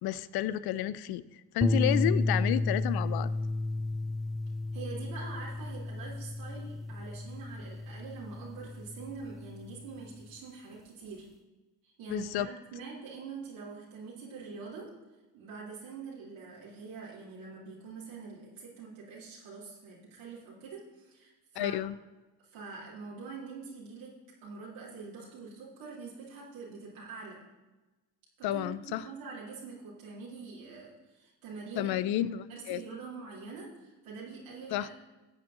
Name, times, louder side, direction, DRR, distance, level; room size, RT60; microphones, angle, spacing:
voice 1, 0.0-3.3 12.1-12.5 21.6-22.0 28.4-29.0 31.8-32.8 34.7-34.9, left 13 dB, 50° left, 16 dB, 0.6 m, -31 dB
sound 1, 1.6-10.0, left 2 dB, ahead, 0.3 m, -32 dB
voice 2, 4.7-11.3 11.8-14.9 15.3-21.7 22.4-27.4 28.4-32.2 32.5-34.9, right 4 dB, 65° right, -6 dB, 2.6 m, -45 dB
18.0 x 7.7 x 2.7 m, 1.1 s
hypercardioid pair, 55°, 50 cm